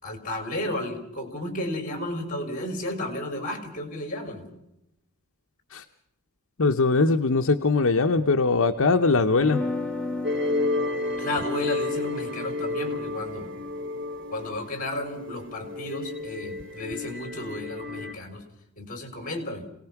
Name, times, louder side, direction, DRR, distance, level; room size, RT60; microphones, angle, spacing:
voice 1, 0.0-4.5 11.2-13.5 14.3-18.4 18.8-19.7, left 1 dB, 40° left, 6 dB, 4.7 m, -33 dB
voice 2, 6.6-9.6, left 3 dB, 65° left, 6 dB, 0.8 m, -21 dB
sound 1, 9.4-15.4, left 2 dB, 5° left, 1.2 m, -36 dB
sound 2, 10.2-18.1, left 2 dB, 50° right, 1.3 m, -31 dB
27.0 x 18.5 x 5.9 m, 0.85 s
head